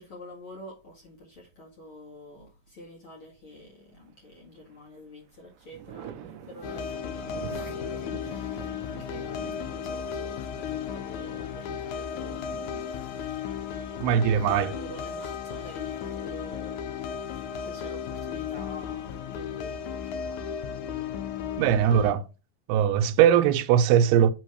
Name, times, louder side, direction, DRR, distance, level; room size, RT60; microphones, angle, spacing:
voice 1, 0.0-20.6, left 1 dB, 45° left, 1.9 m, -48 dB
Thunder, 4.1-4.8 5.2-14.8 16.3-17.1, right 9 dB, 75° right, 2.1 m, -47 dB
sound 1, 6.6-22.1, left 7 dB, 85° left, 1.7 m, -35 dB
voice 2, 14.0-14.7 21.6-22.3 22.7-24.3, right 9 dB, 90° right, 2.7 m, -20 dB
8.1 x 3.8 x 4.8 m
omnidirectional pair, 4.6 m